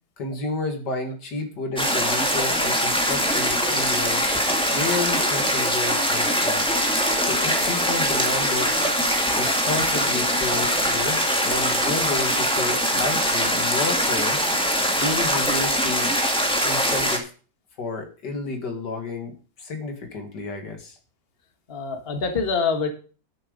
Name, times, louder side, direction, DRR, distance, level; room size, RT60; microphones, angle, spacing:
voice 1, 0.2-4.3 4.7-6.7 7.2-8.7 9.3-14.4 15.0-16.2 16.6-17.3 17.8-21.0, left 3 dB, 75° left, 5 dB, 2.5 m, -31 dB
sound 1, 1.8-17.2, equal, 5° left, 1.8 m, -22 dB
voice 2, 21.7-22.9, left 5 dB, 35° left, 5 dB, 1.7 m, -25 dB
10.0 x 7.7 x 5.1 m, 0.37 s
omnidirectional pair, 1.8 m